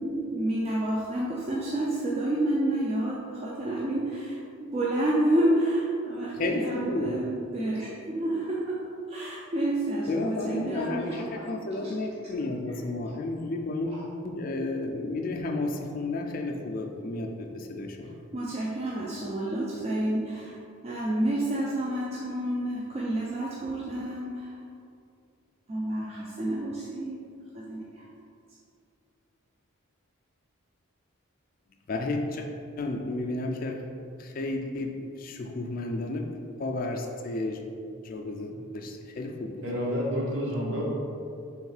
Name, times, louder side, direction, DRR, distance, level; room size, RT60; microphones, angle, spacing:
voice 1, 0.0-8.8 9.1-12.0 12.4-13.2 13.9-14.1 18.3-20.5 20.8-24.6 25.7-27.2 27.5-28.0, right 1 dB, 30° right, -5 dB, 0.4 m, -29 dB
voice 2, 6.4-7.1 10.1-11.2 11.5-13.9 14.2-18.0 31.9-32.5 32.8-33.8 34.4-36.2 36.6-37.6 38.1-39.5, left 2 dB, 40° left, 2 dB, 0.3 m, -32 dB
voice 3, 39.6-40.8, equal, 65° right, -4 dB, 1.1 m, -29 dB
3.5 x 3.1 x 4.8 m, 2.4 s
head